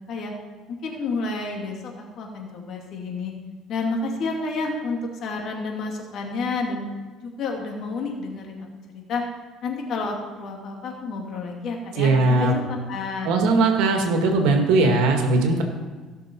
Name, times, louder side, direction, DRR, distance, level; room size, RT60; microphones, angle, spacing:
voice 1, 0.8-3.3 3.7-6.9 7.2-8.7 8.9-9.2 9.6-13.3, left 3 dB, 55° left, 1 dB, 2.5 m, -30 dB
voice 2, 12.0-12.5 13.2-15.6, right 3 dB, 80° right, 3 dB, 2.0 m, -19 dB
16.5 x 6.7 x 4.6 m, 1.4 s
cardioid pair, 125°, 0 cm